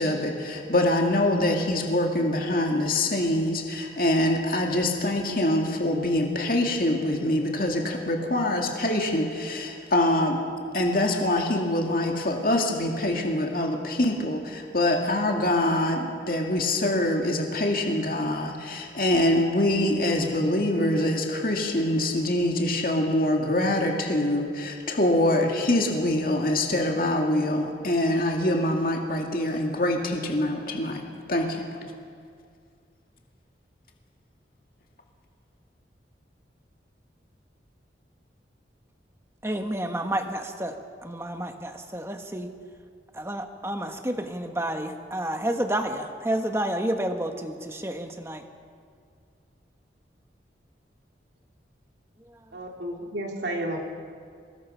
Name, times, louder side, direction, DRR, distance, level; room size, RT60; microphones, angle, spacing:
voice 1, 0.0-10.4 10.7-31.0 31.3-31.6, left 1 dB, 50° left, 1 dB, 2.2 m, -24 dB
voice 2, 39.4-40.8 41.0-42.5 43.1-48.4, right 1 dB, 15° right, 5 dB, 1.3 m, -30 dB
voice 3, 52.5-53.8, right 1 dB, 75° right, 0 dB, 3.2 m, -32 dB
24.5 x 20.5 x 5.6 m, 2.2 s
head